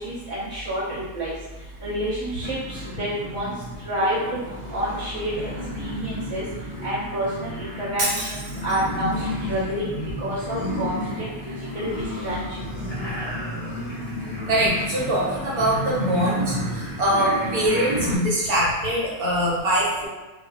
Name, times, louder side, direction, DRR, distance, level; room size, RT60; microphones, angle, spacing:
voice 1, 0.0-1.3 1.8-3.5 3.8-4.2 4.7-6.4 6.8-11.3 11.7-11.9 12.2-12.4, equal, 10° left, -12 dB, 0.6 m, -29 dB
sound 1, 2.4-18.2, equal, 70° left, 0.3 m, -31 dB
Shatter, 8.0-9.0, right 2 dB, 60° right, 0.7 m, -29 dB
voice 2, 14.5-16.4 17.0-20.1, right 1 dB, 80° right, -6 dB, 1.2 m, -23 dB
2.5 x 2.4 x 2.3 m, 1.2 s
omnidirectional pair, 1.5 m